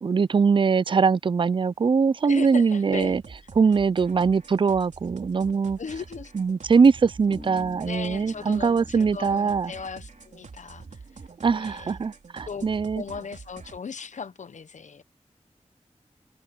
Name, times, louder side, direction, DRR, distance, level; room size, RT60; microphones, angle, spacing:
voice 1, 0.0-3.2 3.6-5.8 6.4-9.7 11.4-13.0, right 5 dB, 45° right, 0.4 m, -22 dB
voice 2, 2.2-3.2 5.8-6.3 7.8-11.0 11.5-12.0 12.5-12.7 13.0-15.0, left 5 dB, 90° left, 0.9 m, -37 dB
sound 1, 2.9-13.8, right 4 dB, 85° right, 3.2 m, -46 dB
Bass guitar, 7.3-10.8, left 1 dB, 15° left, 4.1 m, -46 dB
open air
cardioid pair, 50°, 12 cm